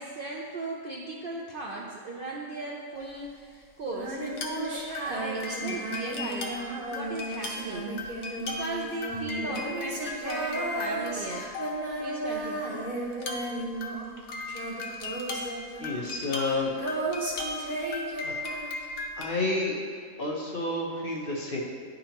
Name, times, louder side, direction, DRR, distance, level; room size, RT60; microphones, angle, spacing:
voice 1, 0.0-6.6 6.9-7.9 8.4-11.5 12.0-12.6, right 2 dB, 60° right, -2 dB, 0.6 m, -37 dB
sound 1, 3.0-3.1 4.3-4.7 4.9-12.2 13.1-19.3, left 3 dB, 90° left, 1.1 m, -38 dB
Female singing, 3.9-14.2 14.5-18.9, right 2 dB, 80° right, 1.5 m, -34 dB
voice 2, 15.8-16.8 18.2-18.3 19.2-19.8 20.2-21.6, left 2 dB, 50° left, -2 dB, 0.9 m, -30 dB
10.0 x 3.8 x 2.9 m, 2.1 s
omnidirectional pair, 1.4 m